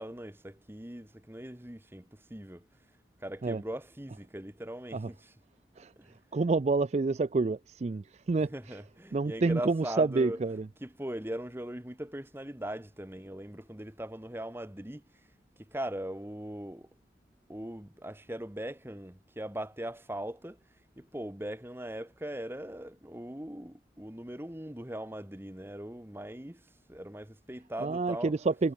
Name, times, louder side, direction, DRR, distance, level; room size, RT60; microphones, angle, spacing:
voice 1, 0.0-2.7 3.2-5.3 6.0-6.1 8.5-10.4 10.8-15.0 15.6-16.9 17.5-20.6 21.0-28.3, right 1 dB, 10° right, 1.4 m, -40 dB
voice 2, 6.3-8.8 9.1-10.7 27.8-28.7, right 3 dB, 35° right, 0.4 m, -28 dB
head